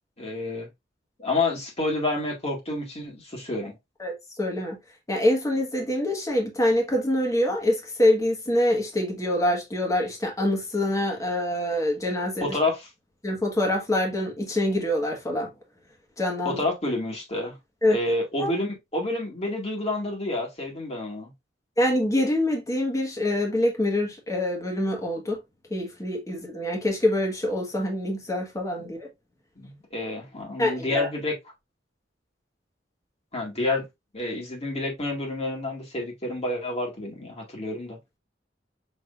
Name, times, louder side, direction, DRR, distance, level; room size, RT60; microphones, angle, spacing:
voice 1, 0.2-0.7 1.2-3.7 12.4-12.9 16.4-17.6 17.9-21.3 29.6-31.4 33.3-33.8 34.1-38.0, left 2 dB, 35° left, 2.1 m, -29 dB
voice 2, 4.0-4.8 5.1-12.6 13.2-15.5 16.2-16.6 17.8-18.0 18.4-18.5 21.8-25.4 25.7-29.1 30.6-31.1, left 1 dB, 20° left, 1.5 m, -25 dB
6.3 x 3.3 x 2.5 m
head